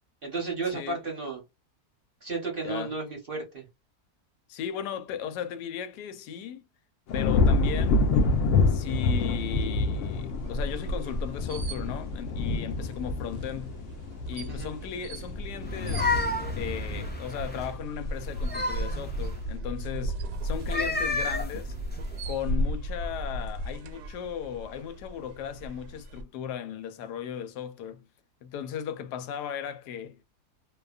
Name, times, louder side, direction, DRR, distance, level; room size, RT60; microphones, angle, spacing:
voice 1, 0.2-1.4 2.2-3.7 14.5-14.7, right 3 dB, 45° right, 0.7 m, -33 dB
voice 2, 4.5-6.6 7.1-8.0 8.7-13.8 14.3-16.2 16.6-21.7 22.3-28.0 28.4-30.2, left 9 dB, 85° left, 1.2 m, -36 dB
sound 1, 7.1-18.4 18.8-19.3, left 3 dB, 70° left, 0.7 m, -28 dB
sound 2, 10.3-26.2, equal, 80° right, 1.1 m, -36 dB
sound 3, 15.6-17.7 18.2-19.4 20.5-22.4, left 2 dB, 15° left, 0.3 m, -31 dB
2.6 x 2.2 x 2.3 m
omnidirectional pair, 1.7 m